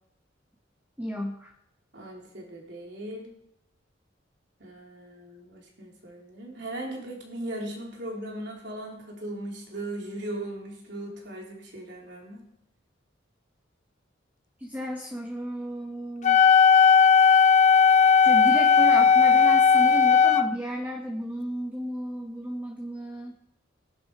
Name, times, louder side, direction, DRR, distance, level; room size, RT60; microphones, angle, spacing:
voice 1, 1.0-1.5 14.6-16.5 18.2-23.3, equal, 10° right, 1 dB, 1.4 m, -33 dB
voice 2, 1.9-3.3 4.6-12.4, right 1 dB, 65° right, -1 dB, 4.0 m, -38 dB
Wind instrument woodwind instrument, 16.2-20.5, left 6 dB, 40° left, 0.7 m, -17 dB
20.5 x 11.0 x 4.9 m, 0.78 s
head